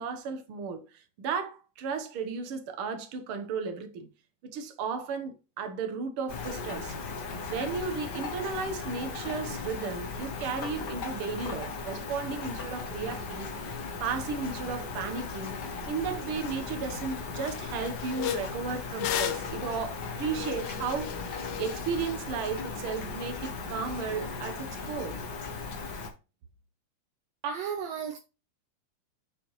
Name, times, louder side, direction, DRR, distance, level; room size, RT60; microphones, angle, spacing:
voice 1, 0.0-4.1 4.4-7.0 7.5-25.2, right 5 dB, 60° right, 1.6 m, -34 dB
Rain, 6.3-26.1, left 4 dB, 50° left, 1.3 m, -37 dB
sound 1, 16.4-16.5 16.8-17.1 17.4-22.2, left 11 dB, 80° left, 1.3 m, -36 dB
voice 2, 27.4-28.2, right 7 dB, 75° right, 1.5 m, -33 dB
6.9 x 6.8 x 3.1 m
omnidirectional pair, 3.8 m